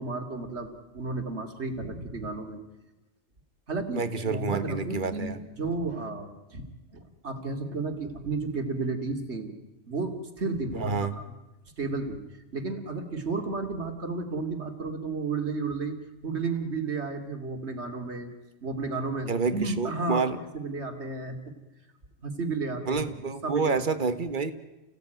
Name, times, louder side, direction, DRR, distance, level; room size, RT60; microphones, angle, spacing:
voice 1, 0.0-2.6 3.7-6.7 6.9-9.5 9.9-11.3 11.8-12.2 12.5-16.0 16.2-18.3 18.6-20.3 20.5-21.4 22.2-23.0 23.4-23.8, right 3 dB, 60° right, 5 dB, 2.9 m, -32 dB
voice 2, 3.9-5.4 10.8-11.1 19.3-20.4 22.9-24.5, right 4 dB, 40° right, 11 dB, 1.5 m, -28 dB
30.0 x 16.5 x 9.2 m, 1.0 s
omnidirectional pair, 1.3 m